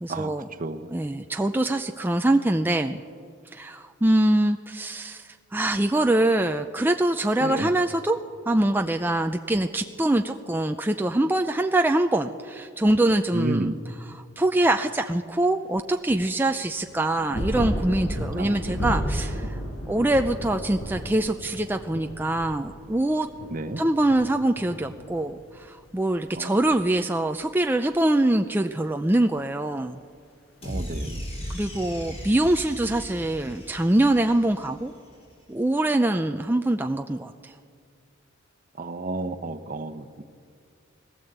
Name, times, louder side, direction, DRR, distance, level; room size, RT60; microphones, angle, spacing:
voice 1, 0.0-0.5 0.9-3.0 3.5-8.2 8.5-13.8 14.1-19.6 19.9-23.3 23.8-30.0 31.5-34.9 35.5-37.5, right 1 dB, 10° right, 5 dB, 0.5 m, -24 dB
voice 2, 0.6-0.9 7.4-7.7 13.3-13.8 18.3-18.9 23.5-23.8 26.4-26.6 30.6-31.2 38.8-40.2, right 2 dB, 45° right, 10 dB, 1.0 m, -31 dB
sound 1, 16.8-25.8 26.1-27.0 27.9-28.0, equal, 80° left, 5.3 m, -33 dB
sound 2, 30.6-35.0, equal, 30° left, 5.2 m, -36 dB
20.0 x 16.5 x 8.1 m, 2.3 s
head